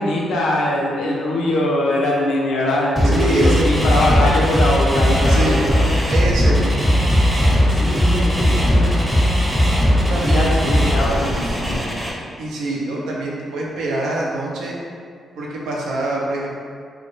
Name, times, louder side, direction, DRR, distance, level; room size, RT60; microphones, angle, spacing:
voice 1, 0.0-6.2 7.7-9.3 10.3-11.9, left 1 dB, 75° left, -3 dB, 0.4 m, -22 dB
sound 1, 3.0-12.1, equal, 5° right, 0.7 m, -17 dB
voice 2, 3.0-4.0 5.3-5.6 6.1-6.9 10.1-10.8 12.4-14.8 15.4-16.5, right 2 dB, 75° right, -3 dB, 0.4 m, -25 dB
2.1 x 2.0 x 3.0 m, 2.1 s
hypercardioid pair, 45°, 0 cm